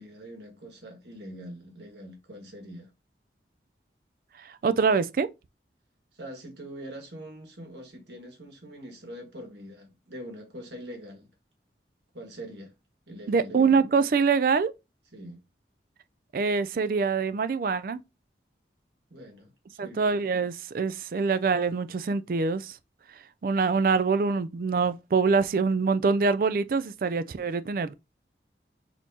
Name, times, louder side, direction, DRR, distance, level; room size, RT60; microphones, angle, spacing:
voice 1, 0.0-2.9 6.1-11.3 12.1-12.7 13.1-13.8 15.1-15.4 19.1-20.1, equal, 75° right, 1.6 m, -43 dB
voice 2, 4.4-5.3 13.3-14.7 16.3-18.0 19.8-22.8 23.4-27.9, right 5 dB, 50° right, 0.3 m, -25 dB
6.3 x 2.9 x 2.8 m
head